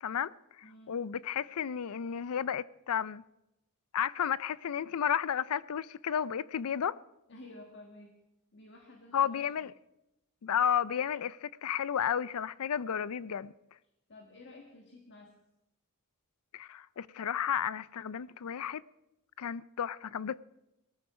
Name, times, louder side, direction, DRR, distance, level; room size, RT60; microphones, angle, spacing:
voice 1, 0.0-3.2 3.9-7.0 9.1-9.7 10.4-13.5 16.5-18.8 19.4-20.4, left 8 dB, 85° left, 0.5 m, -32 dB
voice 2, 0.6-1.0 7.3-8.2 8.5-9.6 14.1-15.4, left 2 dB, 55° left, 1.5 m, -52 dB
19.5 x 14.0 x 4.8 m
head